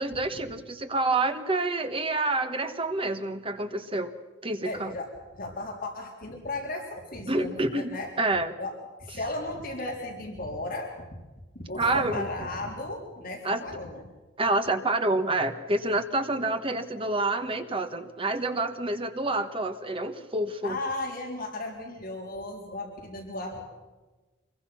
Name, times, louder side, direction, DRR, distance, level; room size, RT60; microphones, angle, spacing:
voice 1, 0.0-4.1 4.4-4.9 7.3-7.9 8.2-8.5 11.8-12.3 13.4-13.6 14.4-20.8, right 2 dB, 30° right, 8 dB, 1.4 m, -28 dB
voice 2, 4.6-8.1 8.6-11.0 11.5-14.1 20.6-23.6, left 2 dB, 50° left, 0 dB, 3.9 m, -35 dB
25.5 x 22.0 x 5.9 m, 1.2 s
head